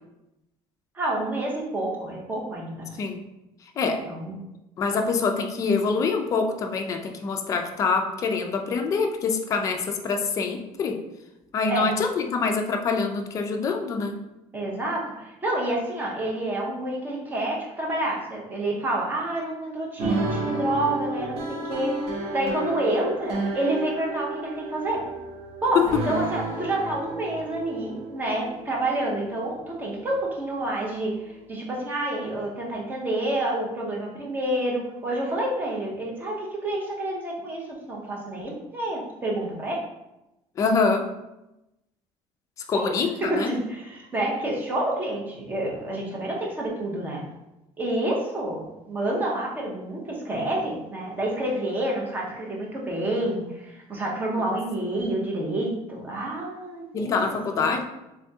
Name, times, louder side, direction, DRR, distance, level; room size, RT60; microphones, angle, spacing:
voice 1, 0.9-3.0 4.1-4.4 11.7-11.9 14.5-21.9 22.3-25.0 25.6-39.8 42.7-42.9 43.2-47.2 47.8-57.2 57.5-57.7, right 1 dB, 15° right, -2 dB, 0.7 m, -28 dB
voice 2, 3.8-4.1 4.8-11.0 11.5-14.2 25.7-25.9 40.6-41.1 42.7-43.5 54.4-54.6 56.9-57.8, left 4 dB, 30° left, 4 dB, 0.3 m, -25 dB
sound 1, 20.0-31.4, right 2 dB, 60° right, 0.7 m, -32 dB
3.4 x 3.4 x 2.7 m, 0.94 s
cardioid pair, 175°, 11 cm